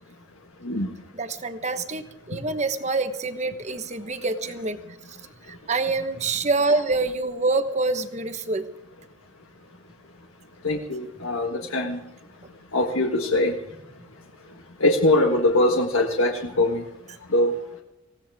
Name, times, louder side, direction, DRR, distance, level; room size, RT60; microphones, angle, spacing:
voice 1, 1.1-4.8 5.1-5.2 5.5-8.7, right 3 dB, 35° right, 9 dB, 1.1 m, -26 dB
voice 2, 10.6-12.0 12.7-13.5 14.8-16.8 17.3-17.5, left 1 dB, 80° left, 2 dB, 1.5 m, -22 dB
19.0 x 16.0 x 3.6 m, 0.88 s
head